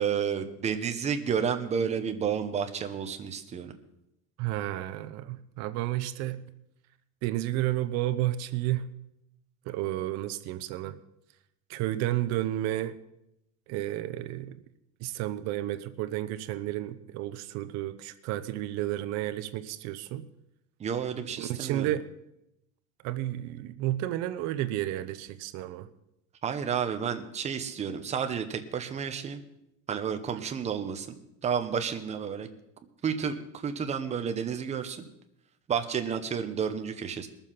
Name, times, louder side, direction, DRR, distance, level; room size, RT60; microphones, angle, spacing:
voice 1, 0.0-3.7 20.8-21.9 26.4-29.4 29.9-31.2 31.4-32.5 33.0-35.0 35.7-37.3, right 7 dB, 20° right, 7 dB, 0.9 m, -31 dB
voice 2, 4.4-6.4 7.2-8.9 9.7-11.0 11.7-13.0 13.7-14.6 15.0-20.2 21.4-22.0 23.0-25.9, right 14 dB, 55° right, 10 dB, 0.9 m, -31 dB
21.0 x 7.2 x 5.7 m, 0.84 s
cardioid pair, 170°, 31 cm